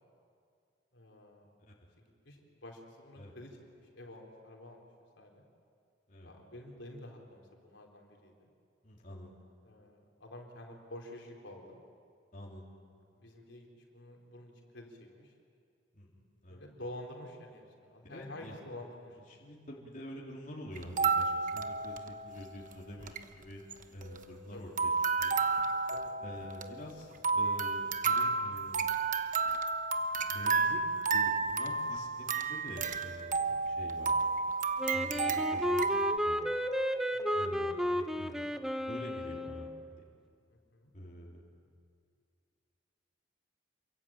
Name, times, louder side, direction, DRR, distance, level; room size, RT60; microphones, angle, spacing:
voice 1, 0.9-1.5 2.0-4.9 5.2-5.4 6.2-8.5 9.7-11.8 13.2-15.3 16.5-19.2 24.5-24.8 25.7-26.1 33.4-33.6 37.1-37.5 40.5-40.9, left 1 dB, 70° left, 0 dB, 4.3 m, -49 dB
voice 2, 8.8-9.3 12.3-12.7 15.9-16.6 18.1-18.6 19.3-23.6 23.9-24.9 25.2-25.4 26.2-28.9 30.2-30.8 31.1-33.4 33.6-34.1 34.9-36.4 37.3-38.5 38.9-40.0 40.9-41.4, equal, 45° left, -3 dB, 3.7 m, -47 dB
sound 1, 20.8-22.4 22.7-22.8 23.0-23.2 23.7-24.5 24.8-36.2, right 4 dB, 45° right, 1.1 m, -31 dB
Wind instrument woodwind instrument, 34.8-39.8, equal, ahead, 0.9 m, -33 dB
28.0 x 23.0 x 8.9 m, 2.3 s
head